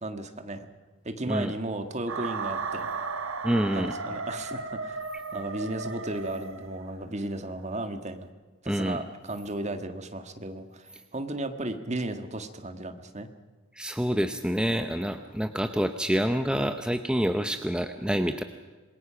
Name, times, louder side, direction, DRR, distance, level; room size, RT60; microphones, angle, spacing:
voice 1, 0.0-0.7 1.1-2.9 3.7-5.1 5.3-8.3 8.6-13.3, right 1 dB, 35° right, 8 dB, 1.7 m, -34 dB
sound 1, 2.1-7.1, right 4 dB, 80° right, 1.4 m, -35 dB
voice 2, 3.4-4.0 8.7-9.0 13.7-18.4, equal, 5° right, 7 dB, 0.7 m, -27 dB
27.0 x 21.5 x 5.8 m, 1.3 s
head